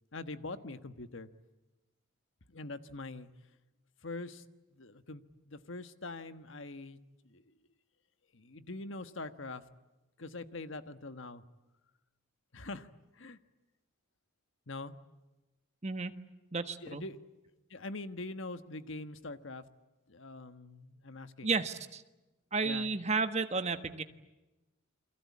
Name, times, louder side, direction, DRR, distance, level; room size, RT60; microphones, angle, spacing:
voice 1, 0.1-1.3 2.5-3.3 4.0-4.4 4.7-7.5 8.3-9.6 10.2-11.4 12.5-13.4 14.7-14.9 16.8-17.2 17.7-19.6 20.1-21.5 22.6-22.9, left 2 dB, 65° left, 11 dB, 1.4 m, -43 dB
voice 2, 15.8-16.1 16.5-17.0 21.4-22.0 22.5-24.0, right 4 dB, 30° right, 9 dB, 1.4 m, -32 dB
29.0 x 23.5 x 8.5 m, 1.1 s
head